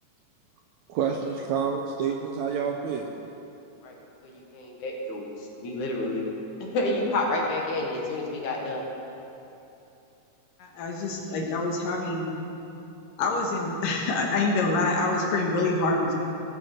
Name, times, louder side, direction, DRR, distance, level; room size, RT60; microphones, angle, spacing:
voice 1, 0.9-3.1, right 6 dB, 75° right, 2 dB, 1.7 m, -28 dB
voice 2, 4.2-5.3 5.6-6.3 6.6-8.8, left 2 dB, 65° left, 0 dB, 2.7 m, -29 dB
voice 3, 10.6-12.3 13.2-16.1, left 2 dB, 80° left, 0 dB, 3.0 m, -26 dB
18.5 x 8.0 x 4.4 m, 2.8 s
omnidirectional pair, 3.9 m